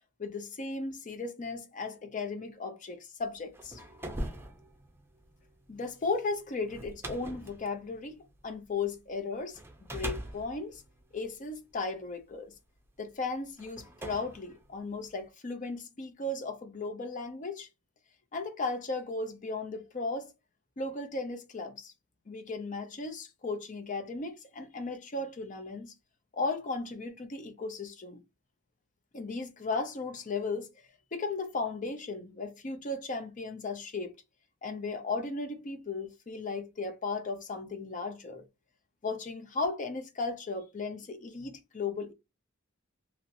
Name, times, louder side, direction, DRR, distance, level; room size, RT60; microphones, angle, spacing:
voice 1, 0.2-3.8 5.7-9.6 9.9-10.8 11.1-12.5 13.0-17.7 18.3-20.3 20.8-21.9 22.3-25.9 26.3-28.2 29.1-30.7 31.1-34.1 34.6-38.5 39.0-42.1, left 3 dB, 40° left, 0.6 m, -36 dB
sound 1, 3.3-8.9 9.5-12.0 12.8-12.9 13.6-15.3, right 1 dB, 10° right, 0.6 m, -42 dB
2.9 x 2.9 x 2.6 m
head